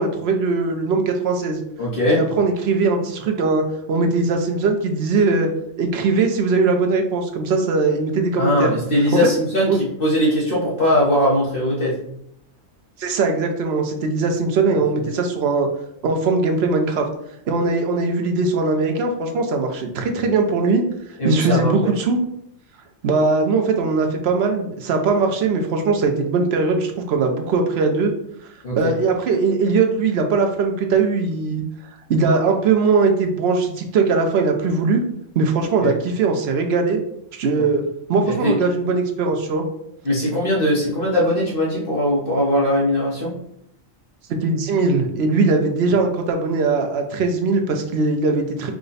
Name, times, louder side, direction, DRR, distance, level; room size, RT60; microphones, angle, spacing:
voice 1, 0.0-1.6 2.1-3.6 3.9-5.5 5.8-8.7 9.1-9.2 9.7-9.8 13.0-15.7 16.0-17.0 17.5-20.8 21.2-22.2 23.0-28.1 28.8-31.6 32.1-35.0 35.3-37.0 37.3-37.8 38.1-39.6 44.3-48.7, right 4 dB, 60° right, 4 dB, 0.9 m, -20 dB
voice 2, 1.8-2.2 8.4-12.0 21.2-21.7 28.6-28.9 35.8-35.9 37.6-37.7 38.3-38.6 40.0-43.3, left 1 dB, 45° left, -6 dB, 1.1 m, -20 dB
4.9 x 2.2 x 3.9 m, 0.74 s
omnidirectional pair, 1.3 m